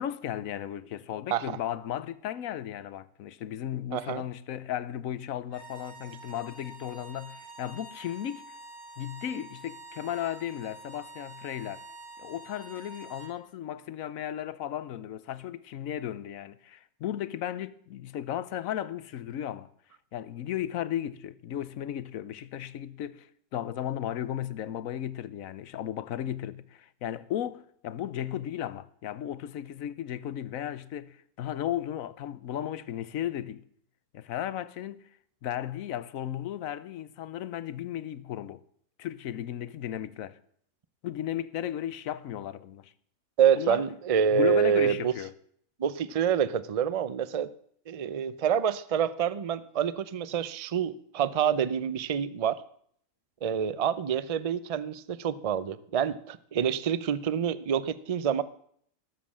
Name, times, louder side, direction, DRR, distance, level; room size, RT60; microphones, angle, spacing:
voice 1, 0.0-8.5 9.0-11.8 12.2-19.7 20.1-33.6 34.1-35.0 35.4-38.6 39.0-40.4 41.0-42.9 43.6-43.8 44.3-45.3, left 11 dB, 70° left, 1.1 m, -35 dB
voice 2, 3.9-4.2 43.4-45.1 45.8-47.5 47.9-52.6 53.4-58.4, right 8 dB, 50° right, 0.4 m, -27 dB
sound 1, 5.4-13.3, right 2 dB, 75° right, 7.8 m, -47 dB
18.5 x 7.5 x 7.3 m
omnidirectional pair, 1.5 m